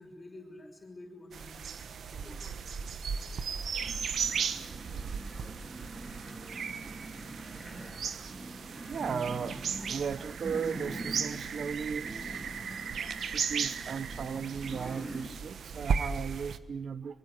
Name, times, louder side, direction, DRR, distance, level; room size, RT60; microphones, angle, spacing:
voice 1, 0.0-1.7 1.9-2.4 3.3-3.4, left 1 dB, 25° left, 3 dB, 5.9 m, -49 dB
sound 1, 1.3-16.6, right 6 dB, 80° right, 1.2 m, -36 dB
sound 2, 3.8-15.3, right 1 dB, 20° right, 4.0 m, -44 dB
voice 2, 7.8-9.6 9.9-12.3 13.0-17.2, right 6 dB, 65° right, 16 dB, 0.9 m, -37 dB
24.0 x 23.5 x 9.8 m, 1.1 s
wide cardioid pair, 160°, 0 cm